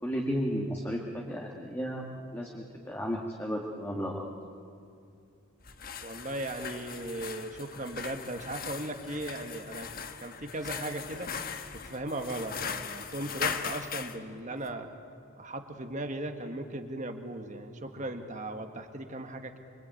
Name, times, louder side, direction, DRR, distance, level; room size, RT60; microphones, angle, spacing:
voice 1, 0.0-2.0 2.3-4.3, equal, 10° left, -1 dB, 1.9 m, -33 dB
sound 1, 5.6-14.2, left 6 dB, 40° left, 1.3 m, -39 dB
voice 2, 6.0-9.9 10.2-11.3 11.7-14.9 15.4-19.6, right 1 dB, 35° right, 6 dB, 1.7 m, -37 dB
26.0 x 24.5 x 9.2 m, 2.5 s
head